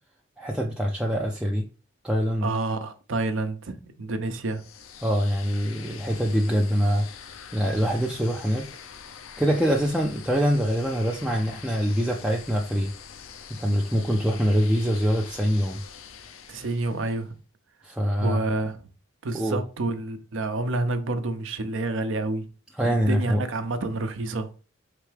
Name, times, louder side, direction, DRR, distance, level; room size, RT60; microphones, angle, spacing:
voice 1, 0.4-1.7 2.0-2.5 5.0-7.1 7.5-8.7 9.4-12.9 13.5-15.8 17.8-18.5 19.3-19.6 22.8-23.4, equal, 5° right, 0.3 m, -24 dB
voice 2, 2.4-4.6 16.5-17.3 18.2-18.9 19.2-22.5 22.8-24.5, right 2 dB, 65° right, 0.6 m, -29 dB
sound 1, 4.4-17.2, left 7 dB, 75° left, 0.5 m, -44 dB
4.5 x 3.4 x 3.2 m
head